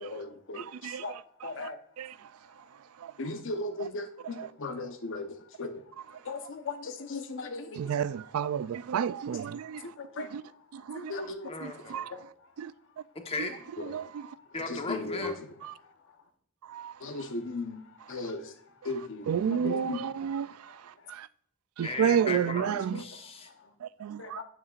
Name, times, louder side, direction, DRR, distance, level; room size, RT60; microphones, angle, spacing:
voice 1, 0.0-0.6 1.0-1.1 1.4-1.7 3.2-5.3 5.6-5.7 6.3-7.7 10.2-10.3 10.9-11.5 13.8-13.9 14.7-15.3 17.0-17.8 18.1-18.4 18.9-20.0 22.3-22.4 22.9-23.0 24.2-24.4, left 3 dB, 60° left, 0.9 m, -36 dB
voice 2, 0.5-1.7 2.0-2.2 3.0-3.3 3.8-3.9 4.3-4.5 7.8-9.9 10.2-10.4 10.7-11.3 11.6-12.2 12.6-12.7 13.9-14.3 15.6-15.7 16.7-16.9 19.3-21.3 21.8-23.0 23.8-24.4, right 8 dB, 75° right, 0.3 m, -32 dB
voice 3, 11.5-12.0 13.1-13.6 14.5-15.4 17.3-17.4 21.8-23.8, left 3 dB, 25° left, 1.1 m, -37 dB
9.4 x 8.6 x 2.4 m
head